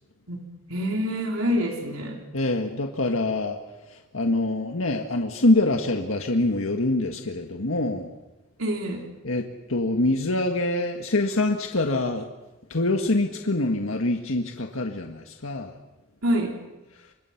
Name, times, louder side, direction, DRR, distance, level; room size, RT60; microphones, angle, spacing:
voice 1, 0.7-2.2 8.6-9.1 16.2-16.6, equal, 90° right, 1 dB, 3.9 m, -26 dB
voice 2, 2.3-3.6 3.9-8.1 9.2-12.3 12.7-15.7, left 2 dB, 75° left, 3 dB, 1.7 m, -25 dB
29.5 x 25.5 x 6.0 m, 1.1 s
head